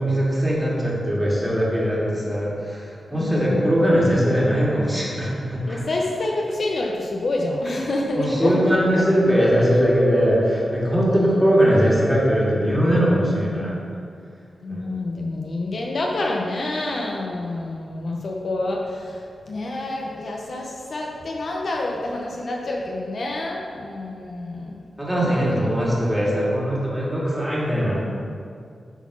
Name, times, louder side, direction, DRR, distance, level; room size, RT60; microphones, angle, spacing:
voice 1, 0.0-5.8 7.7-7.8 8.1-13.8 14.7-14.9 25.0-28.0, equal, 10° right, -6 dB, 1.9 m, -20 dB
voice 2, 3.1-3.8 5.7-9.0 11.1-11.5 14.6-24.8 25.2-25.7, left 2 dB, 50° left, -1 dB, 0.7 m, -28 dB
8.1 x 4.0 x 6.1 m, 2.3 s
wide cardioid pair, 150°, 0 cm